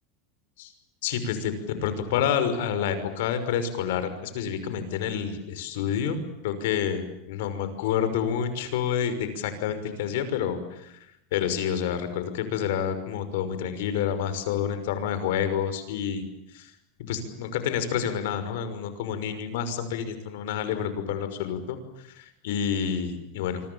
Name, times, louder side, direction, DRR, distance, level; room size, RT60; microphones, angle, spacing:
voice 1, 1.0-11.0 11.3-16.2 16.5-16.7 17.0-23.7, left 8 dB, 70° left, 11 dB, 5.8 m, -29 dB
28.0 x 25.0 x 7.2 m, 0.81 s
supercardioid pair, 165°, 0 cm